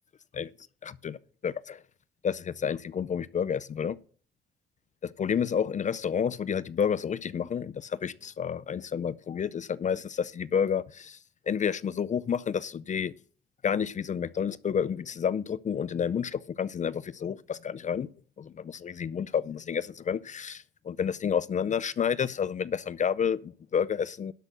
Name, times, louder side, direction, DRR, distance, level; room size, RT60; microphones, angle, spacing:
voice 1, 0.8-1.8 2.2-4.0 5.0-11.2 11.5-13.1 13.6-18.1 18.4-24.3, left 7 dB, 40° left, 0.5 m, -30 dB
12.0 x 6.1 x 6.2 m
cardioid pair, 90°, 20 cm